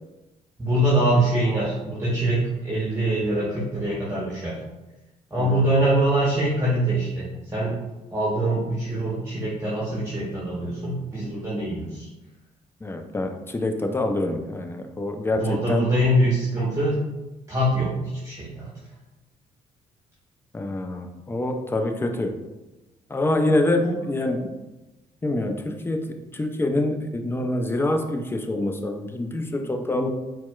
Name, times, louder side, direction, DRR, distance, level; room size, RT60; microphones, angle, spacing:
voice 1, 0.6-4.6 5.3-7.7 8.1-12.1 15.3-17.0 17.5-17.9 18.2-18.7 23.8-23.9, right 1 dB, 15° right, -6 dB, 0.9 m, -23 dB
voice 2, 12.8-15.9 20.5-22.3 23.1-24.6 25.2-26.0 26.3-30.1, left 2 dB, 15° left, 5 dB, 0.4 m, -26 dB
4.2 x 2.1 x 2.3 m, 1.0 s
hypercardioid pair, 45°, 17 cm